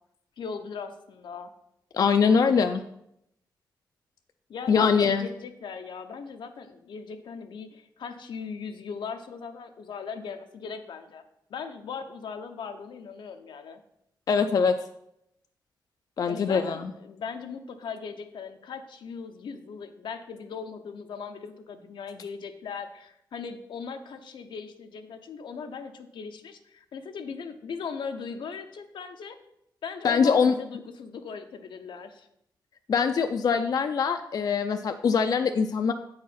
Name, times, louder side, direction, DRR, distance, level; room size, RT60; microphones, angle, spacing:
voice 1, 0.4-1.5 4.5-11.2 11.5-13.8 16.3-29.4 29.8-32.3, left 5 dB, 85° left, 7 dB, 0.8 m, -38 dB
voice 2, 1.9-2.8 4.7-5.3 14.3-14.8 16.2-16.8 30.0-30.5 32.9-35.9, left 6 dB, 50° left, 7 dB, 0.4 m, -23 dB
8.3 x 4.8 x 5.7 m, 0.78 s
wide cardioid pair, 155°, 8 cm